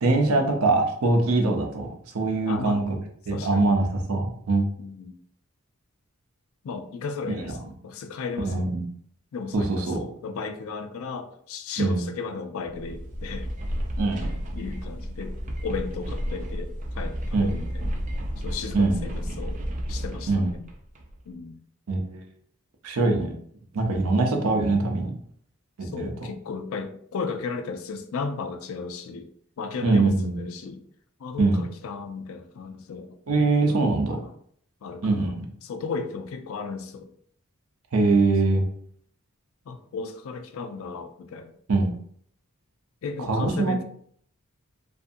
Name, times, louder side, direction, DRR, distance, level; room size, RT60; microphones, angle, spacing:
voice 1, 0.0-1.9 2.1-2.8 3.3-4.7 7.4-7.5 8.4-8.8 9.5-10.0 11.8-12.0 14.0-14.3 17.3-17.5 18.7-19.0 20.3-20.5 21.9-22.2 22.8-23.3 23.7-25.1 25.8-26.1 29.8-30.4 31.4-31.6 33.3-34.2 35.0-35.4 37.9-38.6 41.7-41.9 43.3-43.8, right 3 dB, 85° right, 4 dB, 0.6 m, -23 dB
voice 2, 2.5-2.8 3.3-3.7 4.8-5.1 6.6-8.7 9.3-13.5 14.2-15.4 15.6-18.0 18.4-19.6 19.9-20.5 21.3-21.6 25.8-29.3 29.6-30.8 31.2-33.2 33.7-34.3 34.8-37.1 38.5-38.6 39.7-41.5 43.0-43.8, left 4 dB, 70° left, 8 dB, 0.4 m, -35 dB
sound 1, 12.6-21.2, equal, 35° right, 0.4 m, -32 dB
2.5 x 2.5 x 2.5 m, 0.62 s
head